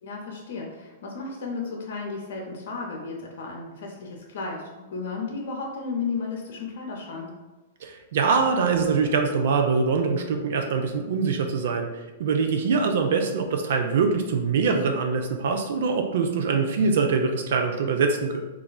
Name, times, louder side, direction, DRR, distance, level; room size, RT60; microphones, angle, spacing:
voice 1, 0.0-7.3, left 4 dB, 65° left, 0 dB, 0.5 m, -34 dB
voice 2, 7.8-18.4, right 5 dB, 70° right, 4 dB, 0.3 m, -23 dB
3.0 x 2.3 x 2.2 m, 1.2 s
hypercardioid pair, 125°, 0 cm